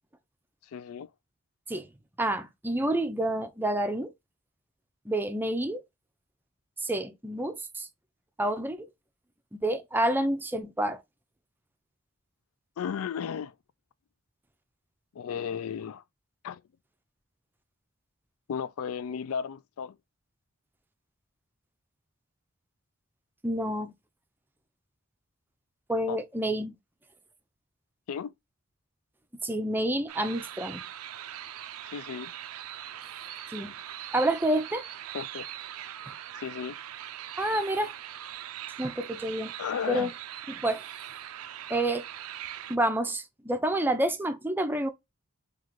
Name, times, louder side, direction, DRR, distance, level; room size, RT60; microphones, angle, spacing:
voice 1, 0.7-1.1 12.8-13.5 15.1-16.0 16.4-16.6 18.5-20.0 26.1-26.2 28.1-28.3 31.9-32.3 35.1-35.5 36.3-36.8 39.6-40.1, left 7 dB, 80° left, 0.4 m, -34 dB
voice 2, 2.2-4.1 5.1-5.8 6.8-7.9 8.4-8.9 9.5-11.0 23.4-23.9 25.9-26.8 29.4-30.8 33.5-33.7 34.1-34.8 37.4-37.9 38.8-39.5 39.9-40.1 40.5-40.8 41.7-42.0 42.7-44.9, right 1 dB, 10° right, 0.4 m, -28 dB
sound 1, 30.1-42.8, right 11 dB, 85° right, 0.4 m, -41 dB
3.7 x 2.4 x 3.0 m
head